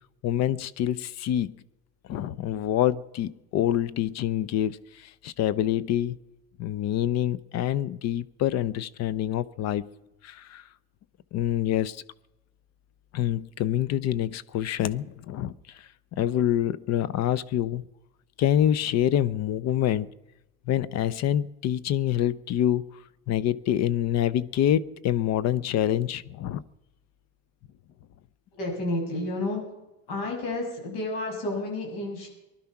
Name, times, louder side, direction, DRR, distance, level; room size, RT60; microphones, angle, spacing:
voice 1, 0.2-1.6 2.1-6.2 6.6-9.8 10.2-10.6 11.3-12.0 13.1-15.8 16.2-17.8 18.4-20.1 20.7-22.9 23.3-26.6, left 11 dB, 55° left, 18 dB, 0.8 m, -26 dB
voice 2, 28.5-29.6 30.1-32.3, left 2 dB, 75° left, 1 dB, 6.9 m, -30 dB
19.5 x 12.0 x 5.9 m, 0.96 s
supercardioid pair, 110°, 32 cm